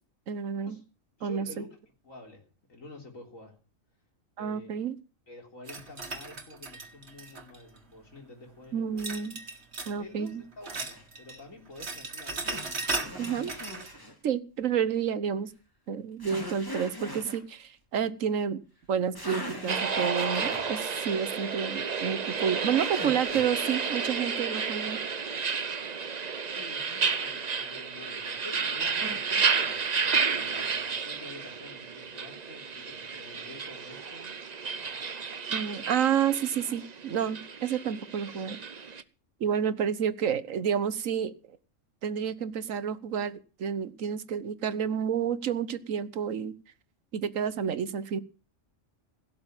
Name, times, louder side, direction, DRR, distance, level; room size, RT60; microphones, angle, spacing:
voice 1, 0.3-0.8 1.2-1.6 4.4-4.9 8.7-9.4 9.9-10.4 13.2-13.5 14.2-15.5 15.9-18.6 18.9-25.0 29.0-29.2 35.5-38.6 39.4-41.3 42.0-46.5 47.1-48.2, right 8 dB, 80° right, 1.4 m, -30 dB
voice 2, 1.2-1.8 2.0-3.6 4.4-4.7 5.3-9.0 10.0-13.5 26.4-34.4, left 2 dB, 85° left, 4.1 m, -49 dB
sound 1, 5.7-7.8 9.0-10.0 10.3-11.4 11.7-13.9, right 3 dB, 55° right, 2.2 m, -37 dB
sound 2, 10.9-11.1 12.4-14.1 16.2-17.4 18.8-18.9 19.2-20.7 22.8-23.9, equal, 15° left, 3.6 m, -40 dB
sound 3, 19.7-39.0, right 5 dB, 35° right, 0.8 m, -31 dB
17.0 x 7.4 x 8.9 m
omnidirectional pair, 1.4 m